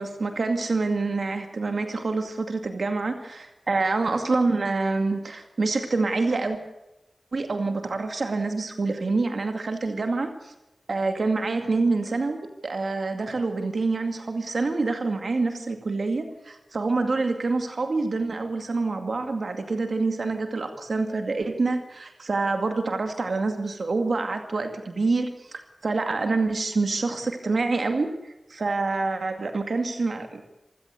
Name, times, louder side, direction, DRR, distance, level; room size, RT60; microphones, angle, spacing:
voice 1, 0.0-6.6 7.3-10.5 10.9-30.4, right 3 dB, 85° right, 6 dB, 2.3 m, -26 dB
26.5 x 16.0 x 8.3 m, 0.93 s
wide cardioid pair, 55°, 0 cm